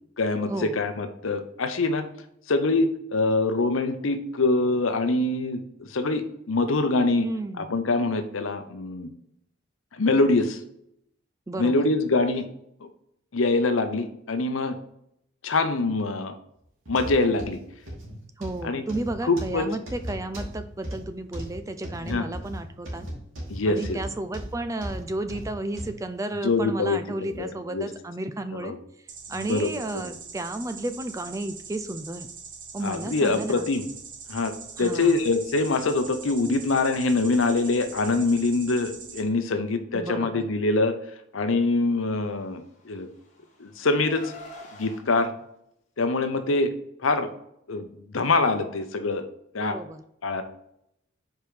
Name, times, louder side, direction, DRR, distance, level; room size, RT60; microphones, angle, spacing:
voice 1, 0.2-2.1 2.5-7.3 7.6-9.1 9.9-10.6 11.6-12.5 12.8-12.9 13.3-14.8 15.4-16.3 16.9-17.6 18.6-18.8 19.2-19.7 22.0-22.3 23.5-24.0 26.4-27.0 27.4-27.9 28.5-28.8 29.3-30.1 32.8-33.9 34.3-34.5 34.8-41.0 41.3-43.1 43.6-44.3 44.8-45.3 46.0-46.7 47.0-47.3 47.7-47.9 48.1-49.3 49.5-49.8 50.2-50.4, left 3 dB, 85° left, 9 dB, 0.7 m, -24 dB
voice 2, 7.2-7.7 11.5-11.9 18.4-23.1 23.7-28.7 29.3-32.3 32.7-33.7 34.8-35.2 39.9-40.5 49.6-50.0, right 2 dB, 15° right, 10 dB, 0.4 m, -33 dB
sound 1, 16.9-26.0 26.5-26.7 27.3-27.4, equal, 80° right, 2.4 m, -37 dB
sound 2, 29.1-39.2, right 5 dB, 40° right, 1.0 m, -43 dB
Car, 42.5-45.0, left 2 dB, 35° left, 1.4 m, -46 dB
5.2 x 4.5 x 4.8 m, 0.75 s
head